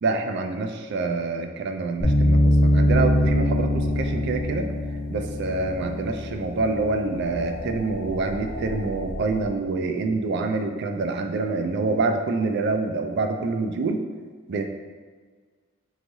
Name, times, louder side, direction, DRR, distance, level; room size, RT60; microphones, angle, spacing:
voice 1, 0.0-4.7 5.1-14.0 14.5-14.7, right 3 dB, 55° right, 5 dB, 0.4 m, -26 dB
sound 1, 2.0-7.1, equal, 30° left, 1.0 m, -22 dB
sound 2, 2.9-9.5, left 1 dB, 55° left, 0.5 m, -37 dB
4.4 x 3.2 x 2.6 m, 1.5 s
head